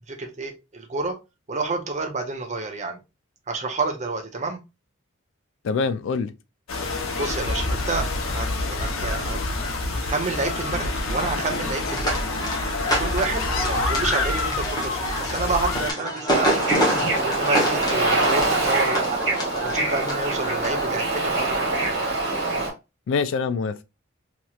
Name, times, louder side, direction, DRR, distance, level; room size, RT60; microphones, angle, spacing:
voice 1, 0.1-1.2 1.5-3.0 3.5-4.6 7.1-8.1 8.3-9.4 9.9-12.2 13.0-16.7 17.2-19.2 19.6-21.6, right 3 dB, 35° right, 0.7 m, -29 dB
voice 2, 5.6-6.3 23.1-23.8, left 5 dB, 65° left, 0.3 m, -24 dB
sound 1, 6.7-15.9, left 2 dB, 85° left, 0.7 m, -27 dB
sound 2, 11.9-20.9, equal, 20° left, 1.0 m, -28 dB
Bird / Ocean, 16.3-22.7, right 2 dB, 55° right, 1.5 m, -24 dB
3.0 x 2.9 x 2.3 m
head